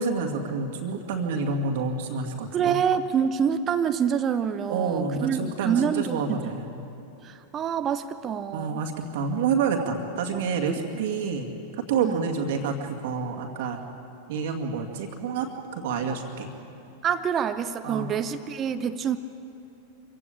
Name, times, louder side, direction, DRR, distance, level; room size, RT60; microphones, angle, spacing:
voice 1, 0.0-2.8 4.7-6.9 8.5-11.5 11.8-13.8 14.3-16.5 17.8-18.2, right 5 dB, 55° right, 3 dB, 2.2 m, -28 dB
voice 2, 2.5-6.4 7.2-8.8 12.0-12.2 17.0-19.2, right 7 dB, 25° right, 10 dB, 0.8 m, -26 dB
25.5 x 16.0 x 8.6 m, 2.7 s
figure-of-eight pair, 90°, 0 cm